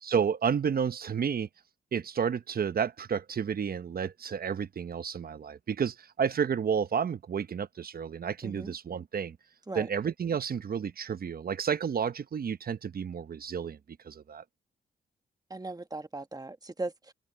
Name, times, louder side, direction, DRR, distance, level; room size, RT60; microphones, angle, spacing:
voice 1, 0.0-1.5 1.9-9.4 9.7-14.4, right 7 dB, 55° right, 0.9 m, -31 dB
voice 2, 8.4-8.7 9.7-9.9 15.5-17.1, right 2 dB, 20° right, 1.5 m, -38 dB
open air
cardioid pair, 65°, 19 cm